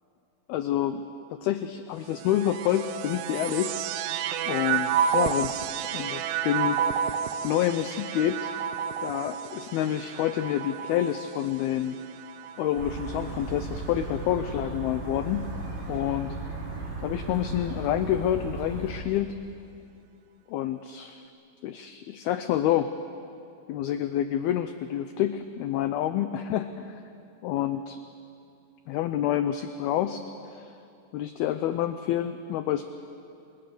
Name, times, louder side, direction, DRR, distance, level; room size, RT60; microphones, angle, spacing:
voice 1, 0.5-1.0 1.3-4.2 4.4-7.1 7.4-8.6 9.0-12.0 12.6-15.5 15.9-16.4 17.0-19.3 20.5-21.2 21.6-22.9 23.7-27.0 27.4-28.0 28.9-30.2 30.5-30.7 31.1-32.9, left 11 dB, 90° left, 9 dB, 2.2 m, -28 dB
sound 1, 2.0-13.5 14.3-15.0, right 8 dB, 85° right, 3.3 m, -31 dB
sound 2, 12.8-18.9, right 2 dB, 65° right, 6.0 m, -36 dB
30.0 x 24.0 x 6.9 m, 2.6 s
omnidirectional pair, 5.4 m